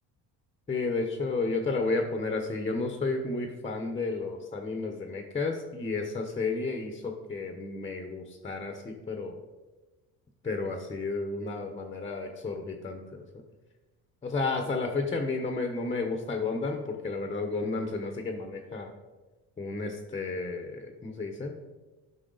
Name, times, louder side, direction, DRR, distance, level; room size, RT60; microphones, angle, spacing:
voice 1, 0.7-9.4 10.4-13.2 14.2-18.9 19.6-21.5, left 3 dB, 20° left, 4 dB, 0.9 m, -32 dB
12.0 x 5.7 x 3.9 m, 1.2 s
cardioid pair, 130°, 34 cm